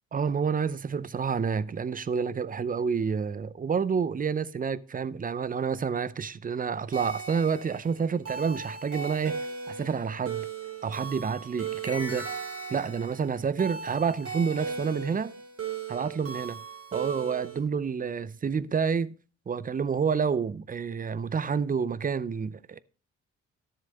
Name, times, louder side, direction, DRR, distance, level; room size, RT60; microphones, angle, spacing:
voice 1, 0.1-9.4 9.7-10.5 10.8-12.3 12.7-15.4 15.9-16.6 16.9-19.1 19.5-22.8, right 6 dB, 30° right, 0.5 m, -29 dB
sound 1, 6.9-17.6, right 5 dB, 50° right, 2.9 m, -37 dB
12.5 x 7.0 x 4.0 m
cardioid pair, 75°, 30 cm